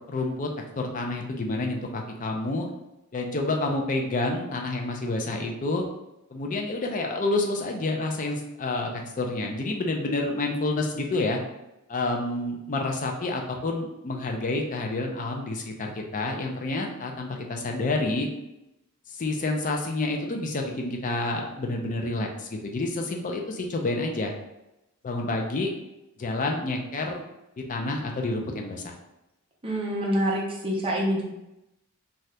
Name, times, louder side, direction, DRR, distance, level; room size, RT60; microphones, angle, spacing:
voice 1, 0.1-0.5 0.8-2.7 3.1-5.8 6.3-11.4 11.9-18.3 19.1-24.3 25.0-25.7 26.2-27.2 27.7-28.9, left 2 dB, 35° left, 2 dB, 0.4 m, -29 dB
voice 2, 29.6-31.2, equal, 25° right, -3 dB, 0.7 m, -26 dB
2.7 x 2.4 x 3.2 m, 0.90 s
head